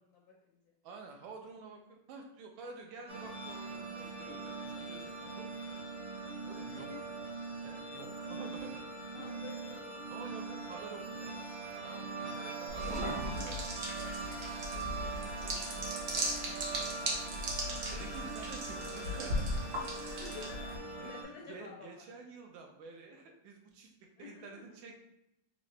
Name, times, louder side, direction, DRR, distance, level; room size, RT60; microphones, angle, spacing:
voice 1, 0.1-0.6 6.7-7.1 9.1-10.1 12.9-13.2 17.6-17.9 20.1-22.0 24.2-24.6, left 5 dB, 75° left, -1 dB, 0.9 m, -51 dB
voice 2, 0.8-5.8 6.5-6.9 7.5-8.8 10.1-11.6 11.8-16.0 17.9-19.8 21.0-23.9 24.2-25.0, right 4 dB, 85° right, 2 dB, 1.4 m, -50 dB
sound 1, 3.1-21.2, right 4 dB, 45° right, 0.9 m, -42 dB
sound 2, 12.7-20.8, equal, 65° right, 1.4 m, -38 dB
3.8 x 2.6 x 3.2 m, 0.83 s
omnidirectional pair, 2.1 m